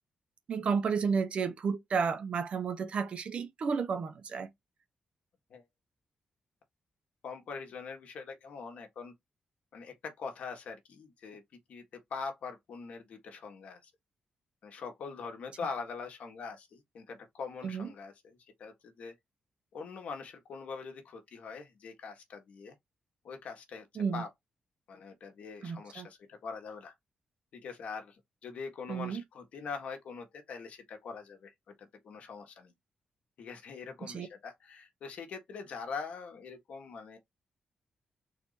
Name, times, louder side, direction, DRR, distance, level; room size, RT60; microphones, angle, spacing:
voice 1, 0.5-4.5 17.6-17.9 24.0-24.2 25.6-26.1 28.9-29.2 34.0-34.3, right 5 dB, 55° right, 0.9 m, -32 dB
voice 2, 7.2-9.1 9.7-11.4 11.7-13.9 14.6-19.1 19.7-22.7 23.2-24.3 24.9-26.9 27.5-32.7 33.4-37.2, left 5 dB, 75° left, 1.6 m, -43 dB
4.2 x 2.7 x 4.1 m
wide cardioid pair, 145°, 2 cm